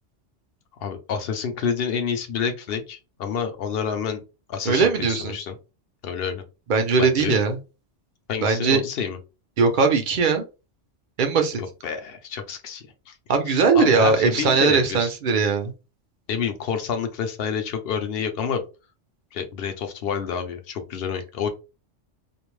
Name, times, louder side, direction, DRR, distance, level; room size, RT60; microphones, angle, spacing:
voice 1, 0.8-4.2 4.5-5.5 6.0-6.4 7.0-7.4 8.3-9.2 11.6-13.1 13.5-15.1 16.3-18.6 19.3-21.5, left 6 dB, 60° left, 6 dB, 0.7 m, -28 dB
voice 2, 4.7-5.4 6.7-7.6 8.4-8.8 9.6-10.4 11.2-11.6 13.3-15.7, right 5 dB, 55° right, 5 dB, 0.6 m, -20 dB
2.5 x 2.1 x 3.0 m, 0.30 s
omnidirectional pair, 1.3 m